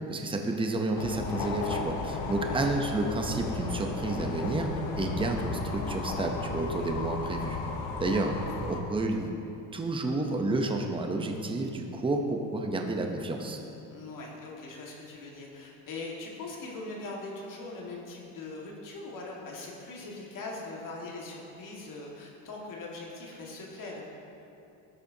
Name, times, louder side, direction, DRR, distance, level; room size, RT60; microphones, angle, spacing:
voice 1, 0.1-4.7 4.9-7.6 8.0-8.3 8.6-9.3 9.7-13.6, right 2 dB, 15° right, 3 dB, 0.7 m, -30 dB
sound 1, 1.0-8.8, left 4 dB, 80° left, 1.0 m, -34 dB
voice 2, 2.4-2.9 13.9-24.0, left 2 dB, 55° left, -2 dB, 1.9 m, -41 dB
13.0 x 6.7 x 2.8 m, 2.8 s
supercardioid pair, 100°, 39 cm